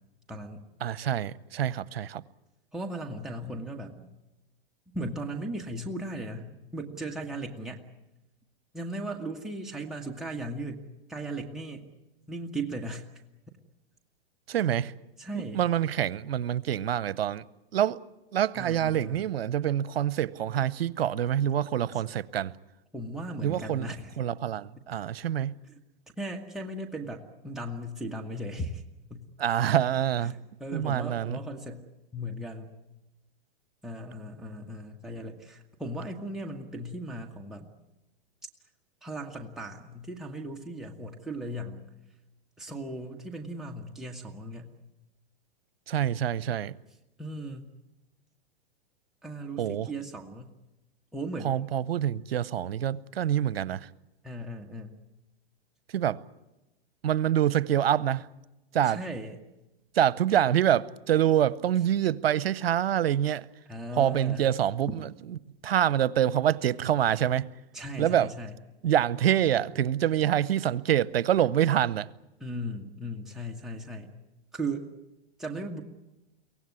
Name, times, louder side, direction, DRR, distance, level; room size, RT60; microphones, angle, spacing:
voice 1, 0.3-0.6 2.7-4.1 4.9-7.8 8.7-10.8 11.1-11.9 12.3-13.0 15.2-15.6 18.5-19.2 22.9-24.1 26.2-28.8 29.1-29.3 30.2-31.8 32.1-32.7 33.8-37.7 39.0-41.8 42.6-44.7 47.2-47.6 49.2-50.5 51.1-51.6 54.2-54.9 58.8-59.4 63.7-64.4 67.7-68.5 72.4-74.1 74.5-74.9 75.4-75.8, right 1 dB, ahead, 1.6 m, -37 dB
voice 2, 0.8-2.2 14.5-14.9 15.3-17.4 17.7-18.0 18.3-22.5 23.4-25.5 29.4-30.3 30.7-31.4 45.9-46.7 49.6-49.9 51.4-53.9 55.9-56.2 57.0-58.3 58.7-59.0 59.9-63.5 64.0-65.4 65.6-67.5 68.0-68.3 68.8-72.1, right 10 dB, 80° right, 0.8 m, -26 dB
24.0 x 17.5 x 9.7 m
hypercardioid pair, 120°, 30 cm